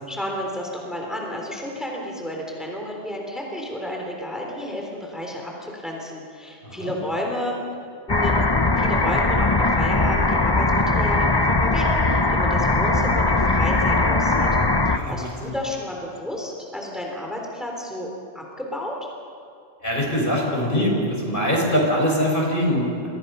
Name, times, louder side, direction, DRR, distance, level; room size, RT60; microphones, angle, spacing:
voice 1, 0.1-7.7 8.1-8.4 8.8-14.5 14.9-18.1 18.3-19.0, equal, ahead, -1 dB, 3.6 m, -31 dB
voice 2, 6.6-6.9 14.9-15.5 19.8-23.1, equal, 50° left, -1 dB, 5.8 m, -23 dB
sound 1, 8.1-15.0, left 2 dB, 25° left, 0.9 m, -20 dB
30.0 x 24.0 x 5.7 m, 2.5 s
omnidirectional pair, 1.2 m